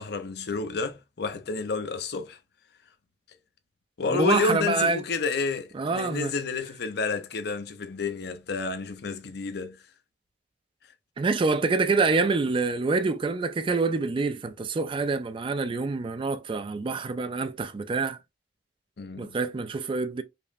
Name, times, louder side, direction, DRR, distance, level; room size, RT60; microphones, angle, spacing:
voice 1, 0.0-2.4 4.0-9.8 19.0-19.4, left 4 dB, 65° left, 0.6 m, -30 dB
voice 2, 4.1-5.0 5.7-6.3 11.2-18.2 19.2-20.2, right 4 dB, 30° right, 0.3 m, -26 dB
5.0 x 2.1 x 2.5 m
head